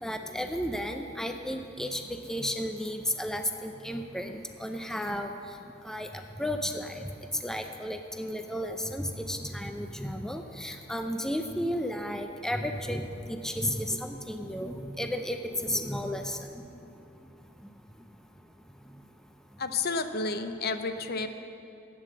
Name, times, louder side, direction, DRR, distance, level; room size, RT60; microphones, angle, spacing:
voice 1, 0.0-2.0 2.3-5.3 5.8-6.1 6.4-7.1 7.4-16.4, equal, 5° left, 5 dB, 0.5 m, -33 dB
voice 2, 19.6-21.3, left 4 dB, 55° left, 8 dB, 0.7 m, -31 dB
11.0 x 8.6 x 7.6 m, 2.6 s
head